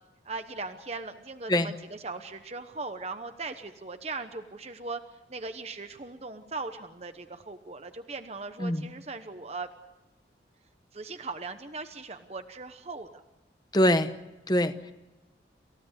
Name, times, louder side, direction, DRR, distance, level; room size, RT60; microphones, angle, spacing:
voice 1, 0.2-5.0 5.3-9.7 10.9-13.1, right 3 dB, 35° right, 8 dB, 1.0 m, -39 dB
voice 2, 13.7-14.1 14.5-14.9, left 1 dB, 20° left, 11 dB, 0.9 m, -24 dB
28.5 x 16.0 x 8.2 m, 1.1 s
head